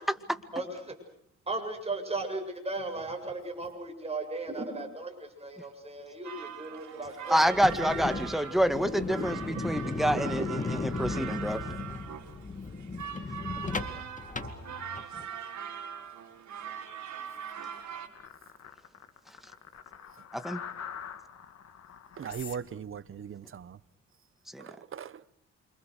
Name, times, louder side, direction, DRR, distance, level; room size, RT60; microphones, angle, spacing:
voice 1, 0.5-1.0 1.5-7.6 10.4-10.5, right 2 dB, 20° right, 7.2 m, -36 dB
sound 1, 6.2-18.1, right 8 dB, 70° right, 4.4 m, -41 dB
voice 2, 7.3-9.4 9.6-11.6 20.3-20.6 24.5-24.6, equal, ahead, 2.0 m, -27 dB
sound 2, 7.4-15.3, left 4 dB, 25° left, 2.3 m, -36 dB
sound 3, 18.1-23.7, left 8 dB, 60° left, 2.7 m, -45 dB
voice 3, 22.2-23.8 24.6-25.1, right 8 dB, 45° right, 1.0 m, -39 dB
28.5 x 26.0 x 6.6 m
cardioid pair, 90°, 30 cm